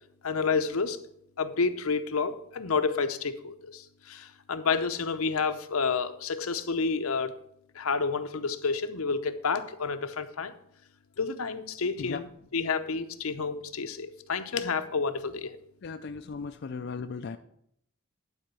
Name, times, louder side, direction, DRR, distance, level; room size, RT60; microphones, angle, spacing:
voice 1, 0.2-1.0 1.4-7.3 7.7-10.5 11.2-12.3 12.5-15.6, left 4 dB, 85° left, 9 dB, 0.7 m, -29 dB
voice 2, 15.8-17.4, left 5 dB, 50° left, 7 dB, 0.4 m, -37 dB
11.0 x 4.9 x 6.8 m, 0.71 s
head